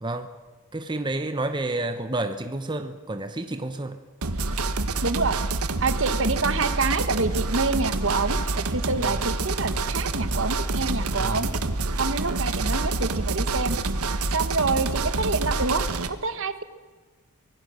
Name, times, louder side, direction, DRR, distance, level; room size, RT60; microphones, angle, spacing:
voice 1, 0.0-0.3 0.7-4.0 11.2-11.4, right 2 dB, 20° right, 8 dB, 0.9 m, -30 dB
sound 1, 4.2-16.1, right 3 dB, 80° right, 1.4 m, -27 dB
voice 2, 5.0-5.4 5.8-11.5 12.0-13.8 14.3-16.6, right 3 dB, 60° right, 11 dB, 1.4 m, -27 dB
24.5 x 18.0 x 6.4 m, 1.4 s
head